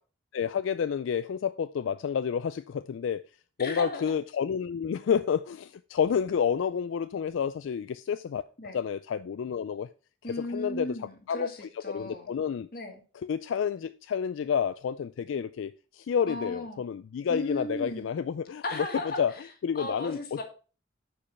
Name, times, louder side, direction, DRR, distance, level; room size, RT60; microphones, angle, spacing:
voice 1, 0.3-3.2 3.6-8.4 8.7-9.9 10.4-11.0 11.3-11.5 11.9-12.7 13.2-18.9 19.2-19.3 19.6-20.4, left 7 dB, 80° left, 0.3 m, -29 dB
voice 2, 3.6-4.1 8.6-8.8 10.2-12.3 12.7-13.0 16.3-16.8 17.3-18.1 18.6-19.4 19.8-20.4, left 1 dB, 50° left, 1.8 m, -36 dB
8.5 x 5.4 x 4.2 m
head